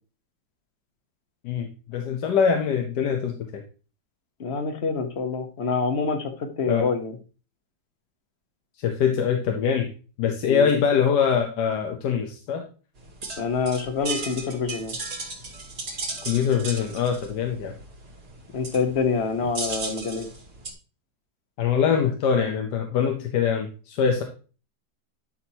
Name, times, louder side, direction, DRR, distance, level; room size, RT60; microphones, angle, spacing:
voice 1, 1.4-3.6 6.7-6.9 8.8-9.9 10.2-12.6 16.3-17.8 21.6-24.2, left 7 dB, 80° left, 3 dB, 1.5 m, -23 dB
voice 2, 4.4-7.2 10.5-10.7 13.4-15.0 18.5-20.3, left 5 dB, 45° left, 7 dB, 1.3 m, -26 dB
sound 1, 12.9-20.7, right 3 dB, 70° right, 2.7 m, -36 dB
11.0 x 6.2 x 2.9 m, 0.36 s
omnidirectional pair, 1.8 m